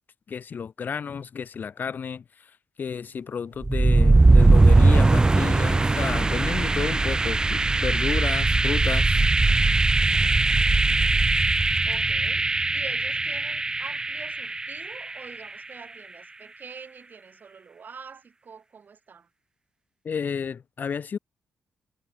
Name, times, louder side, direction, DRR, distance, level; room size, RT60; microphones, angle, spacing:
voice 1, 0.3-2.5 2.8-9.2 20.0-21.2, left 6 dB, 50° left, 0.6 m, -32 dB
Car passing by / Traffic noise roadway noise / Engine, 2.8-10.1, right 12 dB, 80° right, 2.5 m, -54 dB
sound 1, 3.6-15.5, right 3 dB, 20° right, 0.3 m, -20 dB
voice 2, 11.9-19.3, right 6 dB, 50° right, 4.7 m, -45 dB
supercardioid pair, 60°, 4 cm